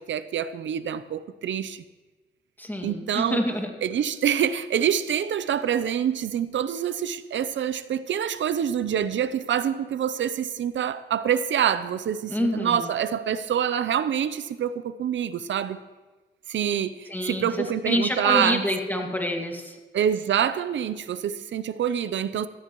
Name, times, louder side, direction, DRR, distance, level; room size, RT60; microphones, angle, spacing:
voice 1, 0.0-1.8 2.8-3.4 3.8-15.8 16.5-18.6 19.9-22.5, right 9 dB, 80° right, 0.7 m, -26 dB
voice 2, 2.6-3.7 12.3-12.9 17.1-19.8, left 1 dB, 10° left, 2.2 m, -27 dB
17.0 x 13.5 x 3.1 m
cardioid pair, 65°, 19 cm